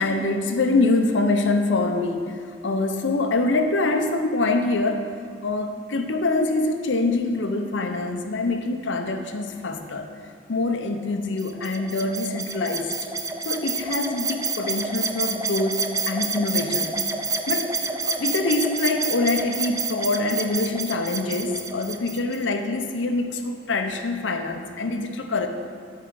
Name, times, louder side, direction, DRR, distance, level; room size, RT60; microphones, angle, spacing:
voice 1, 0.0-5.1 5.4-10.1 10.5-12.9 13.4-16.9 17.5-17.7 18.0-25.5, left 2 dB, 80° left, 6 dB, 0.7 m, -25 dB
sound 1, 11.4-22.4, right 4 dB, 15° right, 0.4 m, -29 dB
12.0 x 4.7 x 4.7 m, 2.1 s
head